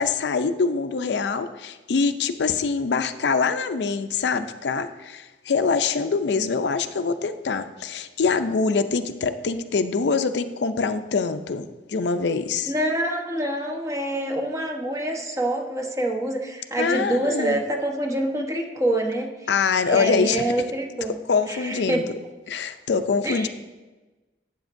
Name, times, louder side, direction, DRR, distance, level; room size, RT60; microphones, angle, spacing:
voice 1, 0.0-12.7 16.8-17.6 19.5-20.4 21.3-22.0 22.5-23.5, left 5 dB, 70° left, 10 dB, 0.5 m, -24 dB
voice 2, 12.7-19.3 19.9-21.1 21.5-22.1 23.2-23.5, right 1 dB, 20° right, 2 dB, 1.0 m, -26 dB
12.0 x 8.4 x 2.6 m, 1.2 s
head